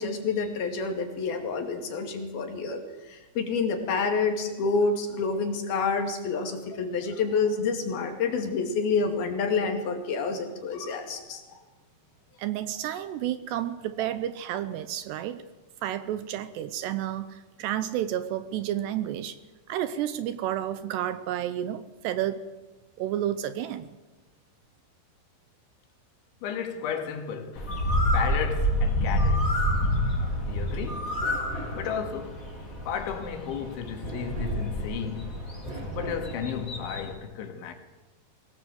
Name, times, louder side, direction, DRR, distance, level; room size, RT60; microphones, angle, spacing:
voice 1, 0.0-11.6, left 4 dB, 60° left, 3.9 m, -28 dB
voice 2, 12.4-15.4 15.8-19.4 19.7-22.4 23.0-24.0, right 11 dB, 75° right, 2.7 m, -31 dB
voice 3, 26.4-27.8 28.1-29.5 30.5-31.1 31.8-32.4 32.9-35.3 36.0-37.7, left 7 dB, 80° left, 4.3 m, -33 dB
Bird, 27.6-37.1, equal, 20° left, 4.1 m, -28 dB
sound 1, 30.6-36.4, right 2 dB, 30° right, 3.0 m, -41 dB
22.5 x 18.5 x 7.9 m
omnidirectional pair, 5.3 m